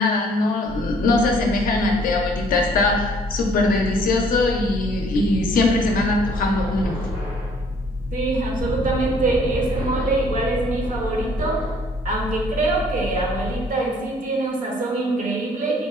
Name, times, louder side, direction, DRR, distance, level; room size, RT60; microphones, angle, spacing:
voice 1, 0.0-7.0, left 2 dB, 65° left, 1 dB, 0.5 m, -21 dB
sound 1, 0.7-13.7, left 2 dB, 5° left, 0.4 m, -29 dB
sound 2, 5.1-11.9, equal, 85° right, 1.2 m, -33 dB
voice 2, 8.1-11.7 12.0-15.9, right 2 dB, 60° right, -1 dB, 0.6 m, -24 dB
2.9 x 2.0 x 2.3 m, 1.3 s
cardioid pair, 75°, 16 cm